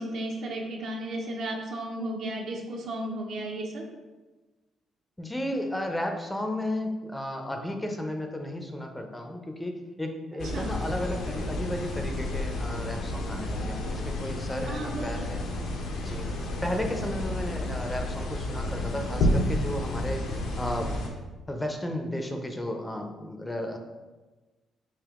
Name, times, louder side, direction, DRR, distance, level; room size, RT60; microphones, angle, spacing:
voice 1, 0.0-3.9 10.5-10.8 14.7-15.2, right 1 dB, 70° right, 0 dB, 0.7 m, -34 dB
voice 2, 5.2-15.4 16.0-16.3 16.6-21.0 21.5-23.8, left 1 dB, 10° left, 4 dB, 0.4 m, -33 dB
sound 1, 10.4-21.1, left 1 dB, 85° left, 0.6 m, -31 dB
3.5 x 2.6 x 3.5 m, 1.2 s
cardioid pair, 90°, 0 cm